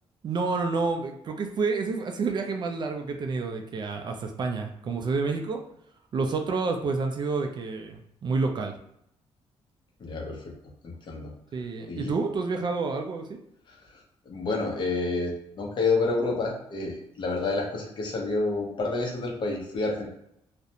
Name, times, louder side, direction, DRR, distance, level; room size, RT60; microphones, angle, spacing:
voice 1, 0.2-5.6 6.1-8.7 11.5-13.4, right 4 dB, 45° right, 4 dB, 0.3 m, -29 dB
voice 2, 10.0-10.5 10.8-11.3 11.9-12.1 13.7-14.0 14.3-20.1, left 3 dB, 45° left, -1 dB, 0.8 m, -29 dB
2.4 x 2.1 x 2.8 m, 0.75 s
cardioid pair, 105°, 11 cm